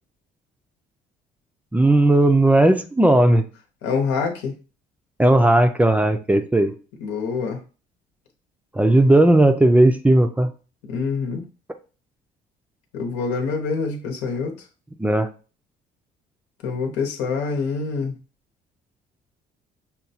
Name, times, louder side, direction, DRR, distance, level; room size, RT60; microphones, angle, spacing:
voice 1, 1.7-3.5 5.2-6.7 8.7-10.5 15.0-15.3, right 1 dB, 10° right, 7 dB, 0.4 m, -16 dB
voice 2, 3.8-4.5 7.0-7.6 10.9-11.4 12.9-14.5 16.6-18.2, left 5 dB, 90° left, 2 dB, 1.0 m, -25 dB
5.7 x 2.3 x 2.7 m, 0.35 s
cardioid pair, 110°, 17 cm